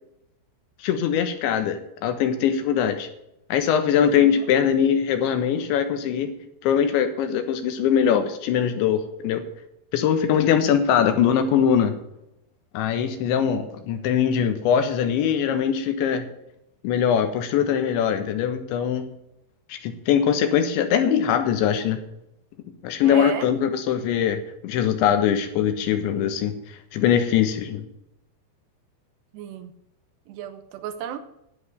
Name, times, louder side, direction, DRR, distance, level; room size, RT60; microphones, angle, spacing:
voice 1, 0.8-3.1 3.5-6.3 6.6-9.4 9.9-12.0 12.7-16.3 16.8-19.1 19.7-22.0 22.8-27.9, left 8 dB, 85° left, 8 dB, 3.7 m, -22 dB
voice 2, 4.0-4.5 10.6-10.8 23.0-23.5 29.3-29.7 30.3-31.2, right 9 dB, 75° right, 9 dB, 3.0 m, -34 dB
10.5 x 8.8 x 6.8 m, 0.82 s
omnidirectional pair, 5.2 m